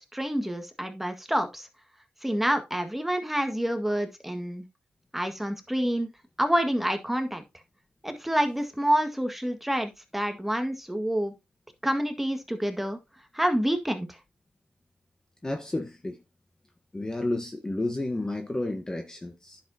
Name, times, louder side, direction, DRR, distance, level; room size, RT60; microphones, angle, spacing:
voice 1, 0.0-1.7 2.2-4.6 5.1-6.1 6.4-7.4 8.0-11.3 11.8-13.0 13.3-14.2, equal, 5° right, 1.7 m, -28 dB
voice 2, 15.4-16.2 16.9-19.6, left 2 dB, 20° left, 1.2 m, -31 dB
10.0 x 7.1 x 2.8 m
cardioid pair, 75°, 4 cm